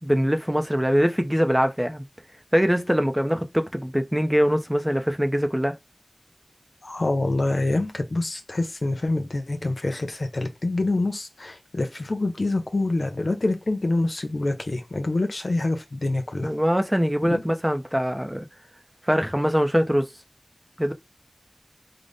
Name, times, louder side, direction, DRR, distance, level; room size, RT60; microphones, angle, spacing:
voice 1, 0.0-2.0 2.5-5.8 16.4-18.5 19.0-20.1 20.8-20.9, equal, 10° right, 0.6 m, -23 dB
voice 2, 6.8-16.5 17.2-17.4, left 2 dB, 85° left, 0.7 m, -26 dB
3.9 x 2.1 x 3.3 m
wide cardioid pair, 45°, 0 cm